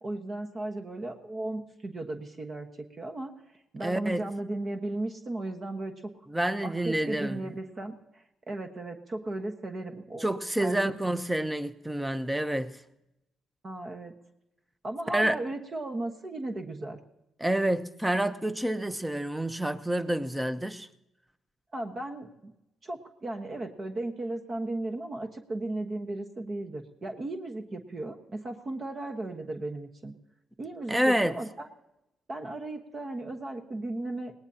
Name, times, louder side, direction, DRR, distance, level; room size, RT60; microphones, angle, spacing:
voice 1, 0.0-3.3 3.7-6.1 6.6-10.3 10.6-11.0 13.6-14.1 14.8-17.0 21.7-22.5 22.8-30.1 30.6-31.7 32.3-34.3, right 2 dB, 40° right, 1.3 m, -36 dB
voice 2, 3.8-4.2 6.3-7.4 10.2-12.7 15.1-15.4 17.4-20.9 30.9-31.4, right 1 dB, 10° right, 0.8 m, -28 dB
22.0 x 18.0 x 2.8 m
cardioid pair, 90°, 0 cm